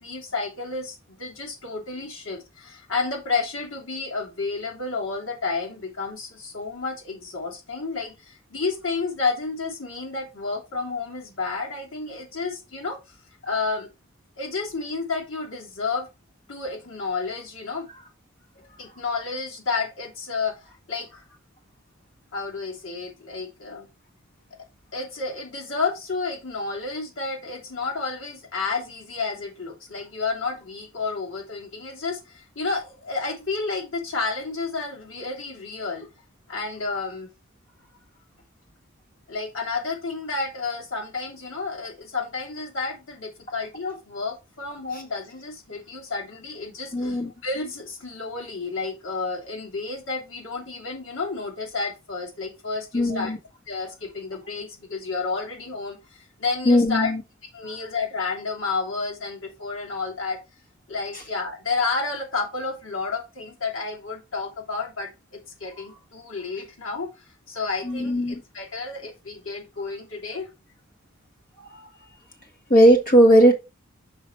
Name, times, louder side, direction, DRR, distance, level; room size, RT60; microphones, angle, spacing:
voice 1, 0.0-13.1 13.4-13.9 14.4-16.1 16.5-17.9 18.8-20.5 20.9-21.2 22.3-23.9 24.9-36.1 36.5-37.3 39.3-53.3 53.7-57.1 57.5-60.4 60.9-65.1 65.6-70.5, left 4 dB, 75° left, 0 dB, 2.8 m, -31 dB
voice 2, 46.9-47.3 52.9-53.4 56.7-57.2 67.8-68.4 71.7-71.8 72.7-73.5, equal, 45° left, 2 dB, 1.9 m, -17 dB
6.1 x 5.0 x 4.4 m, 0.26 s
head